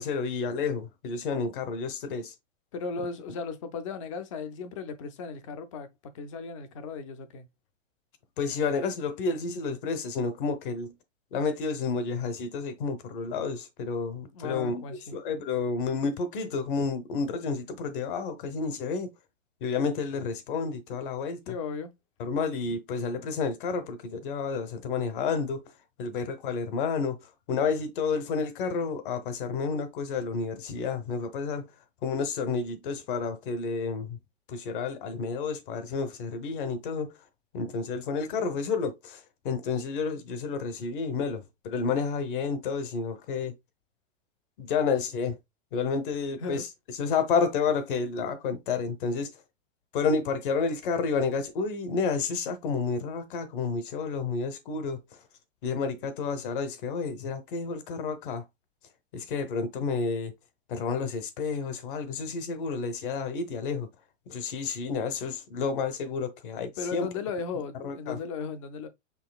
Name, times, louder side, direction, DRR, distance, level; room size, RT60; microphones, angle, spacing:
voice 1, 0.0-2.3 8.4-10.9 11.3-14.8 15.1-19.1 19.6-21.5 22.2-25.6 26.0-27.2 27.5-31.7 32.0-34.2 34.5-37.1 37.5-39.2 39.4-43.5 44.6-45.4 45.7-46.7 47.0-49.3 49.9-55.0 55.6-58.4 59.1-60.3 60.7-63.9 64.3-67.1 67.8-68.2, left 5 dB, 45° left, 1.0 m, -30 dB
voice 2, 2.7-5.9 6.1-7.5 14.3-15.2 21.5-21.9 46.4-46.6 66.8-68.9, left 5 dB, 25° left, 0.5 m, -36 dB
5.8 x 3.7 x 2.3 m
supercardioid pair, 170°, 37 cm